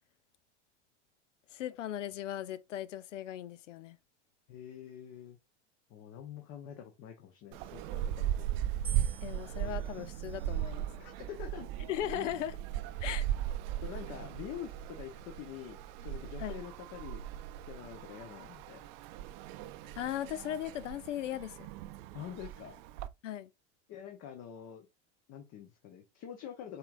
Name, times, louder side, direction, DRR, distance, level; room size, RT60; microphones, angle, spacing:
voice 1, 1.5-4.0 9.2-10.9 11.9-12.6 13.0-13.3 16.4-16.6 20.0-21.6 23.2-23.5, left 11 dB, 90° left, 0.5 m, -38 dB
voice 2, 4.5-5.4 5.9-8.5 11.0-11.7 13.8-17.2 17.7-18.9 22.1-22.8 23.9-24.9 25.3-26.8, left 9 dB, 45° left, 1.0 m, -46 dB
sound 1, 7.5-23.1, right 11 dB, 55° right, 0.5 m, -38 dB
sound 2, 8.8-11.1 11.9-12.4, right 5 dB, 15° right, 1.1 m, -51 dB
5.5 x 3.7 x 2.5 m
hypercardioid pair, 105°, 36 cm